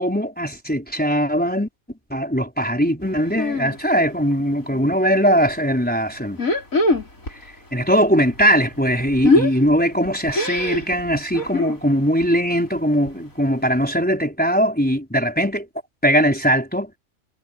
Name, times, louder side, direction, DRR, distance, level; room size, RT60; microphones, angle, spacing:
voice 1, 0.0-1.7 2.1-6.4 7.7-15.6 16.0-16.9, equal, 5° left, 4.8 m, -20 dB
sound 1, 3.4-3.8 4.1-4.9 5.3-5.5 6.3-7.5 7.7-11.8 12.2-12.5 12.8-12.9 13.0-13.1 13.7-13.8, left 2 dB, 80° left, 6.7 m, -23 dB
omnidirectional pair, 1.4 m